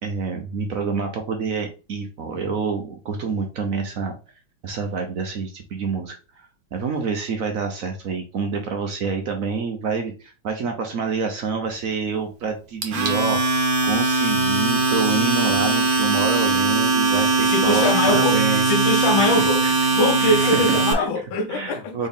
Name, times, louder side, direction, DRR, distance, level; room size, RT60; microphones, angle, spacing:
voice 1, 0.0-4.1 4.6-6.2 6.7-13.6 13.8-18.6 19.2-19.7 20.2-20.6 21.0-21.1 21.5-22.1, right 5 dB, 70° right, 0.8 m, -27 dB
Domestic sounds home sounds, 12.8-20.9, right 3 dB, 55° right, 1.3 m, -20 dB
voice 2, 17.5-18.4 18.7-19.6 19.9-22.0, left 3 dB, 75° left, 1.4 m, -22 dB
4.3 x 3.5 x 3.5 m
omnidirectional pair, 2.2 m